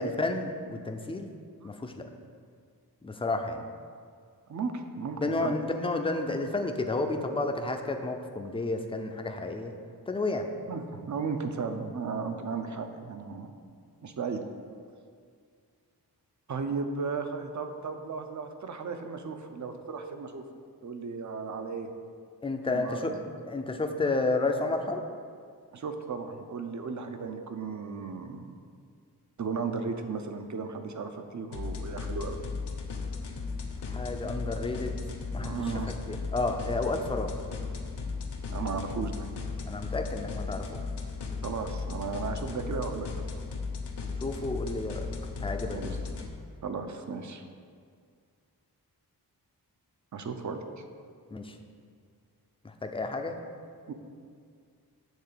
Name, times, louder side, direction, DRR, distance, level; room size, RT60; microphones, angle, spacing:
voice 1, 0.0-1.3 1.6-1.9 3.0-3.6 5.2-9.7 10.1-10.5 22.4-23.1 23.5-25.0 33.9-35.0 35.3-35.6 36.1-37.3 39.7-40.8 44.2-45.1 45.4-45.9 51.3-51.5 52.6-53.4, left 2 dB, 15° left, 5 dB, 0.5 m, -31 dB
voice 2, 4.5-5.6 10.7-13.5 14.0-14.4 16.5-20.4 20.8-21.9 22.6-23.2 25.7-28.5 29.4-32.4 35.4-35.9 38.5-39.3 41.4-43.2 45.7-46.0 46.6-47.4 50.1-50.8 53.9-54.0, right 5 dB, 50° right, 7 dB, 0.7 m, -35 dB
sound 1, 31.5-46.3, left 4 dB, 85° left, 0.9 m, -36 dB
8.1 x 3.8 x 6.7 m, 2.1 s
wide cardioid pair, 110°, 39 cm